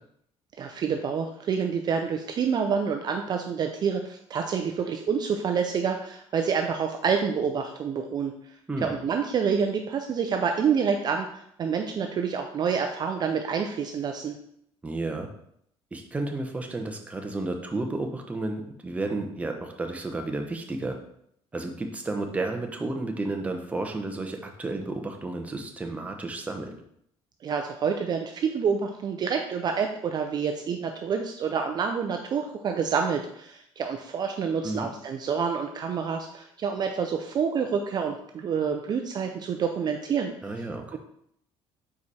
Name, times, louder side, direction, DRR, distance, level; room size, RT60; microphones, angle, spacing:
voice 1, 0.6-8.3 8.8-14.4 27.4-40.3 40.9-41.0, right 6 dB, 40° right, 4 dB, 0.5 m, -28 dB
voice 2, 14.8-15.3 15.9-21.0 21.5-26.8 34.6-34.9 40.4-41.0, right 2 dB, 10° right, 3 dB, 0.8 m, -32 dB
4.8 x 4.8 x 4.2 m, 0.71 s
cardioid pair, 140°, 11 cm